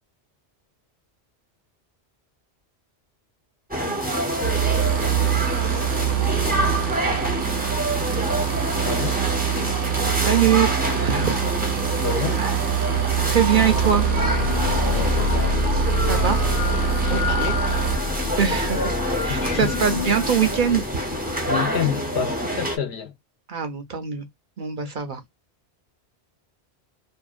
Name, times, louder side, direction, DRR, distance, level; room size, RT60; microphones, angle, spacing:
sound 1, 3.7-22.8, equal, 10° right, 0.6 m, -26 dB
sound 2, 4.4-17.9, right 13 dB, 85° right, 0.9 m, -25 dB
sound 3, 4.5-8.1 12.3-21.6, left 4 dB, 45° left, 0.5 m, -29 dB
voice 1, 8.9-9.2 11.9-12.4 14.9-15.6 17.1-17.7 19.3-19.7 21.5-23.1, left 7 dB, 65° left, 0.9 m, -29 dB
voice 2, 10.2-10.7 11.0-11.4 12.4-12.6 12.8-14.1 16.0-16.4 17.1-17.5 18.4-20.9 23.5-24.2 24.6-25.2, right 8 dB, 55° right, 0.6 m, -23 dB
2.6 x 2.3 x 2.4 m
omnidirectional pair, 1.1 m